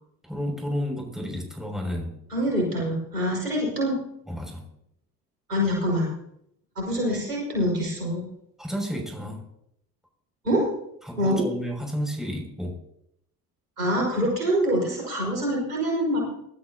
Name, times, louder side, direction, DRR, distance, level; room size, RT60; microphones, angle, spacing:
voice 1, 0.2-2.2 4.3-4.6 8.6-9.4 11.0-12.8, equal, ahead, 1 dB, 6.6 m, -31 dB
voice 2, 2.3-4.0 5.5-6.1 6.8-8.2 10.4-10.6 11.2-11.4 13.8-16.2, equal, 90° right, -2 dB, 5.4 m, -25 dB
24.5 x 13.0 x 2.9 m, 0.76 s
figure-of-eight pair, 50°, 44 cm